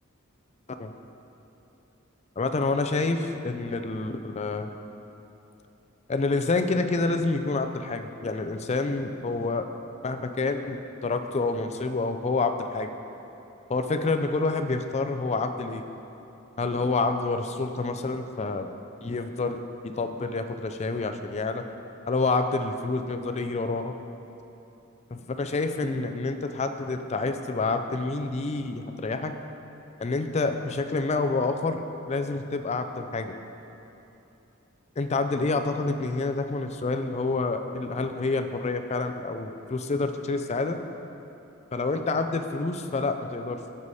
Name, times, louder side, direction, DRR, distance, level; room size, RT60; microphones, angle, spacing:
voice 1, 2.4-4.7 6.1-9.6 10.0-12.9 13.7-15.8 16.6-18.7 19.0-21.6 22.1-23.9 25.1-29.3 30.0-31.8 32.1-33.3 35.0-40.8 41.7-43.6, left 3 dB, 30° left, 7 dB, 0.4 m, -28 dB
14.0 x 4.8 x 4.2 m, 2.9 s
head